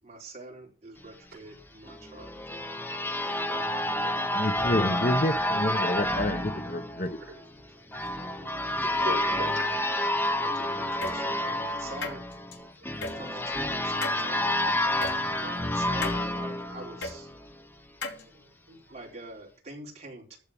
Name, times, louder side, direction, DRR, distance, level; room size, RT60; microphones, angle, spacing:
voice 1, 0.0-2.3 3.2-4.0 8.8-9.6 10.3-12.2 13.1-17.3 18.9-20.4, right 2 dB, 35° right, 4.3 m, -45 dB
sound 1, 1.9-17.5, left 1 dB, 10° left, 0.8 m, -29 dB
voice 2, 4.3-7.2, left 1 dB, 45° left, 1.0 m, -28 dB
voice 3, 7.9-8.6 9.0-9.6 13.0-13.4 15.2-15.3 18.3-18.8, right 1 dB, 55° right, 6.8 m, -40 dB
sound 2, 11.0-11.1 12.0-12.5 13.0-13.1 14.0-14.2 15.0-15.1 16.0-16.2 17.0-17.1 18.0-18.2, left 3 dB, 75° left, 2.9 m, -34 dB
14.0 x 4.8 x 8.6 m
head